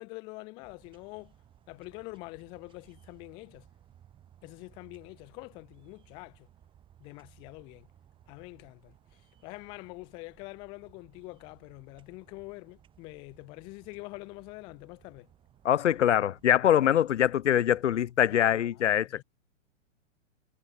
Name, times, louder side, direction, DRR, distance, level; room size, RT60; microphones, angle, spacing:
voice 1, 0.0-1.3 1.7-3.7 4.4-6.5 7.0-7.9 8.3-15.3 18.3-19.2, left 26 dB, 10° left, 0.8 m, -45 dB
sound 1, 0.6-18.1, right 10 dB, 15° right, 5.4 m, -60 dB
voice 2, 15.6-19.2, left 10 dB, 65° left, 1.0 m, -24 dB
hypercardioid pair, 170°, 38 cm